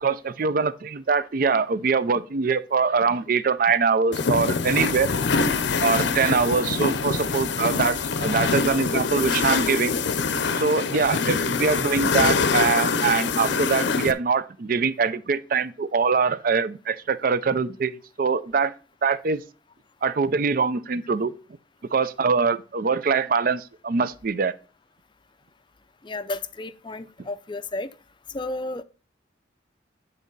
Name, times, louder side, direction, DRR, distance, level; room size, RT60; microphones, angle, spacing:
voice 1, 0.0-5.1 5.8-9.9 10.6-17.9 18.2-18.7 19.0-19.4 20.0-21.3 21.9-24.5, right 5 dB, 45° right, 0.4 m, -23 dB
sound 1, 4.1-14.1, left 5 dB, 70° left, 0.6 m, -24 dB
voice 2, 26.0-27.9 28.3-28.8, left 2 dB, 25° left, 0.4 m, -32 dB
9.7 x 4.0 x 5.3 m
head